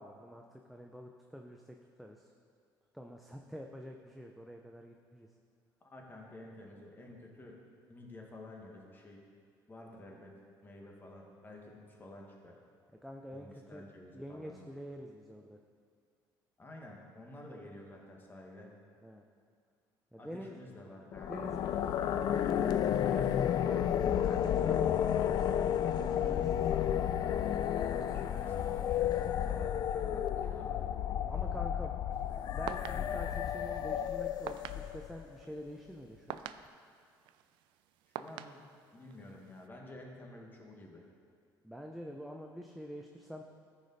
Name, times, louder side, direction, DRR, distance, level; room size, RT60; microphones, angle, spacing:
voice 1, 0.0-2.3 2.9-5.3 13.0-13.8 14.1-15.6 19.0-19.2 20.1-20.6 21.2-25.2 25.8-26.5 26.8-27.1 31.3-32.0 32.5-36.4 41.6-43.4, equal, ahead, 1 dB, 0.5 m, -47 dB
voice 2, 5.8-7.6 7.9-9.2 9.7-10.3 10.6-12.6 13.3-14.5 16.6-18.7 20.2-21.3 21.6-21.9 27.9-30.8 38.2-41.1, left 1 dB, 25° left, -1 dB, 1.7 m, -51 dB
sound 1, 21.1-35.2, left 9 dB, 55° left, 0.4 m, -32 dB
sound 2, 32.1-39.7, right 11 dB, 85° right, 0.4 m, -48 dB
14.0 x 5.1 x 4.1 m, 2.1 s
cardioid pair, 110°, 8 cm